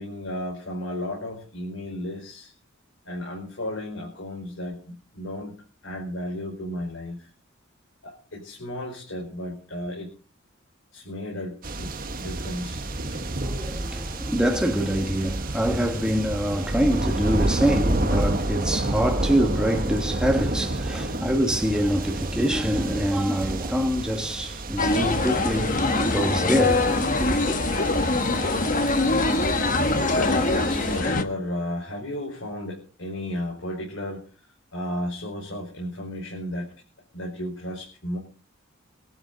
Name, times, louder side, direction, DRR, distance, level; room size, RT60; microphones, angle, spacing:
voice 1, 0.0-2.5 3.0-5.5 5.8-7.3 8.0-10.1 10.9-12.8 13.1-13.2 18.9-19.0 20.9-21.0 22.8-23.2 29.9-34.2 34.7-36.7 37.1-38.2, left 1 dB, 70° left, 4.8 m, -34 dB
sound 1, 11.6-31.0, right 1 dB, 45° right, 1.4 m, -30 dB
voice 2, 13.3-27.6, equal, 5° right, 1.5 m, -25 dB
sound 2, 24.8-31.2, left 2 dB, 40° left, 1.4 m, -23 dB
23.0 x 12.0 x 4.0 m
head